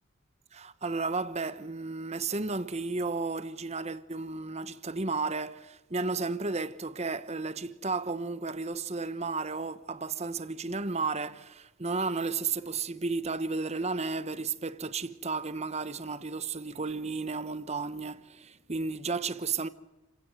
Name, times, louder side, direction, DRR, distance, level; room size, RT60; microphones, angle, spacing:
voice 1, 0.5-19.7, right 4 dB, 30° right, 1.0 m, -33 dB
29.5 x 16.5 x 8.1 m
head